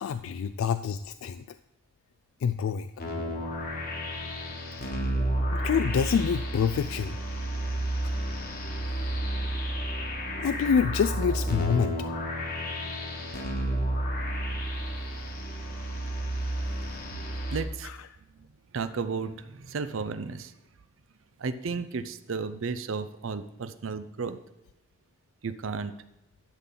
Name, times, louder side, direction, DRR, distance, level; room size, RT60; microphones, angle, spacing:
voice 1, 0.0-1.4 2.4-2.9 5.5-7.2 10.4-11.9, left 7 dB, 75° left, 11 dB, 0.3 m, -26 dB
sound 1, 3.0-17.6, right 1 dB, 45° left, 1.3 m, -31 dB
voice 2, 17.5-17.9 18.7-20.5 21.4-24.4 25.4-25.9, right 5 dB, 65° right, 12 dB, 0.6 m, -33 dB
11.5 x 5.9 x 3.8 m, 0.91 s
head